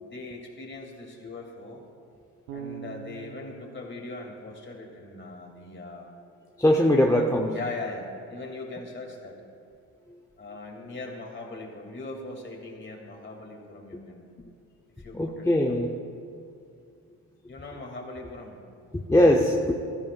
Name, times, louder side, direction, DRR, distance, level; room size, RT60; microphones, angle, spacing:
voice 1, 0.0-1.8 2.5-6.1 7.5-9.4 10.4-14.5 15.0-15.8 17.5-18.6, left 2 dB, 35° left, 1 dB, 2.6 m, -40 dB
Bass guitar, 2.5-5.5, right 7 dB, 85° right, 0.9 m, -44 dB
voice 2, 6.6-7.5 15.1-15.9 18.9-19.7, left 1 dB, 10° left, 1 dB, 0.8 m, -21 dB
16.0 x 13.0 x 2.5 m, 2.4 s
supercardioid pair, 65°, 34 cm